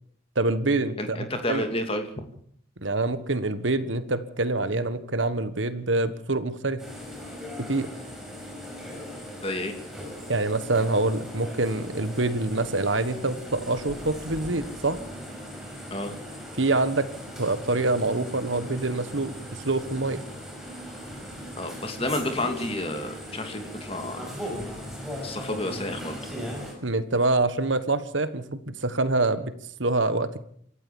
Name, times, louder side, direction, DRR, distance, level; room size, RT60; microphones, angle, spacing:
voice 1, 0.3-1.6 2.8-6.8 7.6-7.9 10.3-15.0 16.6-17.1 17.4-20.2 26.8-29.5 29.8-30.4, right 2 dB, 70° right, 12 dB, 1.5 m, -26 dB
voice 2, 1.0-2.1 9.4-9.7 15.9-16.2 21.6-24.2 25.2-26.2, left 1 dB, 30° left, 6 dB, 2.7 m, -30 dB
sound 1, 6.8-26.7, equal, ahead, 6.0 m, -38 dB
27.0 x 13.5 x 7.2 m, 0.63 s
head